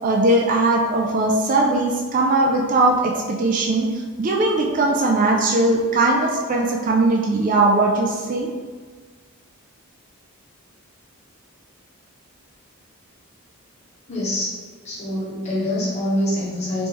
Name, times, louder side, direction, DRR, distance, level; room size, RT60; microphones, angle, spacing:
voice 1, 0.0-8.5, right 2 dB, 35° right, 0 dB, 0.3 m, -19 dB
voice 2, 14.1-14.5 14.8-16.9, left 1 dB, 30° left, -6 dB, 0.9 m, -25 dB
3.4 x 3.1 x 2.9 m, 1.5 s
head